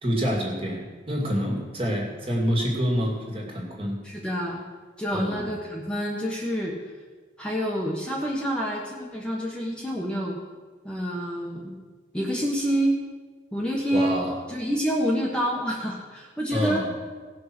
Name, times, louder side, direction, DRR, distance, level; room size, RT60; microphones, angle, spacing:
voice 1, 0.0-4.0 5.1-5.5 13.9-14.3 16.5-16.9, equal, 30° right, -1 dB, 2.5 m, -27 dB
voice 2, 4.0-4.6 5.0-6.7 7.4-10.4 10.8-11.8 12.1-13.0 13.5-14.2 14.5-16.8, equal, 5° left, -4 dB, 1.3 m, -27 dB
17.5 x 6.2 x 6.2 m, 1.4 s
head